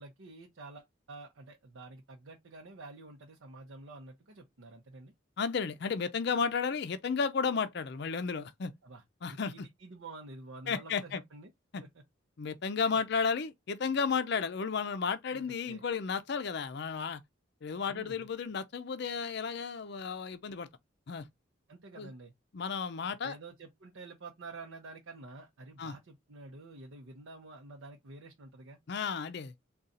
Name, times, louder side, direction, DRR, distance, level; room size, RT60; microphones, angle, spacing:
voice 1, 0.0-5.1 8.8-11.5 11.8-11.9 12.8-13.0 15.3-15.8 17.9-18.3 21.7-22.3 23.2-28.8, right 3 dB, 70° right, 0.7 m, -49 dB
voice 2, 5.4-8.7 9.2-9.7 10.7-11.2 11.7-11.8 12.4-17.2 17.6-20.7 21.1-21.2 22.0-22.1 22.5-23.4 25.8-25.9 28.9-29.5, left 5 dB, 55° left, 0.4 m, -33 dB
3.8 x 2.3 x 4.0 m
head